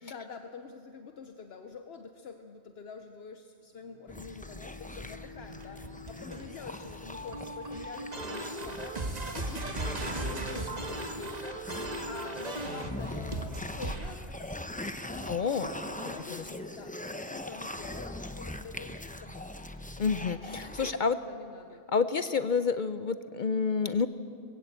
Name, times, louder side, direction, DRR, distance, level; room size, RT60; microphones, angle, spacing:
voice 1, 0.0-9.0 9.3-11.6 12.1-16.9 17.3-19.5 20.8-21.9, left 5 dB, 70° left, 6 dB, 1.1 m, -46 dB
Bowed string instrument, 3.7-8.0, left 6 dB, 85° right, 5.2 m, -52 dB
sound 1, 4.1-20.9, left 1 dB, 10° left, 0.7 m, -42 dB
sound 2, 5.4-14.1 15.8-16.2, right 2 dB, 40° right, 1.6 m, -37 dB
voice 2, 15.3-15.7 20.0-21.2 21.9-24.1, left 5 dB, 55° left, 12 dB, 0.7 m, -28 dB
20.5 x 16.0 x 8.0 m, 2.4 s
omnidirectional pair, 1.1 m